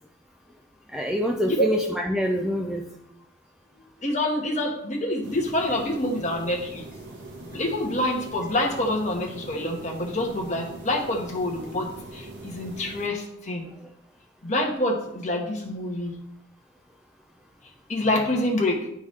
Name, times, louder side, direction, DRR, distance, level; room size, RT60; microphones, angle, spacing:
voice 1, 0.9-2.9 13.8-13.9, equal, 5° right, 1 dB, 0.3 m, -26 dB
voice 2, 3.8-6.8 7.5-13.6 14.4-16.2 17.9-18.9, left 1 dB, 35° left, -1 dB, 1.2 m, -27 dB
sound 1, 5.2-13.1, right 2 dB, 55° right, 1.3 m, -42 dB
10.5 x 3.5 x 3.2 m, 0.77 s
head